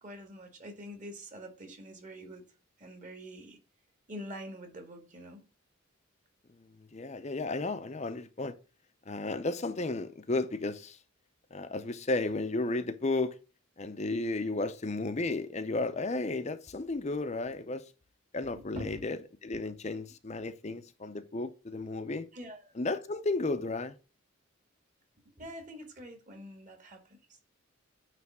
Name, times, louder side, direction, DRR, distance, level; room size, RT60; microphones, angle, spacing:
voice 1, 0.0-2.4 2.8-3.6 4.1-5.4 18.4-19.0 22.3-22.7 25.4-27.2, equal, 35° right, 1.9 m, -45 dB
voice 2, 6.6-8.6 9.1-11.0 11.5-13.4 13.8-17.8 18.3-22.3 22.8-23.9, left 2 dB, 35° left, 0.6 m, -33 dB
9.4 x 3.3 x 6.1 m
head